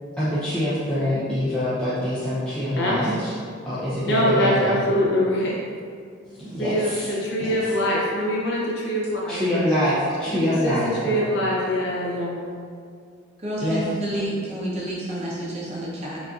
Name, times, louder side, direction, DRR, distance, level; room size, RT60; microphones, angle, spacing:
voice 1, 0.2-3.3 3.7-4.8 6.3-7.1 7.4-7.6 9.3-11.3 13.6-13.9, equal, 5° left, -12 dB, 0.5 m, -25 dB
voice 2, 4.0-5.6 6.6-9.4 10.6-12.4, equal, 50° left, -5 dB, 0.7 m, -23 dB
voice 3, 13.4-16.2, equal, 30° right, -7 dB, 0.7 m, -29 dB
4.9 x 2.5 x 2.5 m, 2.2 s
head